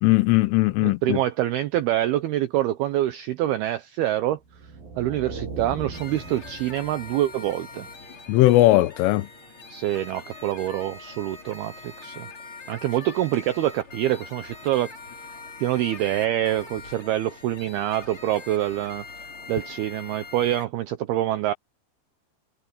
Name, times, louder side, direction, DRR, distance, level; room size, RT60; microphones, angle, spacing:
voice 1, 0.0-1.2 8.3-9.3, left 17 dB, 85° left, 3.4 m, -19 dB
voice 2, 0.8-4.4 5.0-7.9 9.7-12.3 12.7-14.9 15.6-19.1 19.5-21.5, right 13 dB, 85° right, 2.2 m, -26 dB
sound 1, 4.5-7.4, right 4 dB, 50° right, 8.3 m, -38 dB
sound 2, 5.9-20.7, left 3 dB, 30° left, 4.6 m, -43 dB
omnidirectional pair, 5.6 m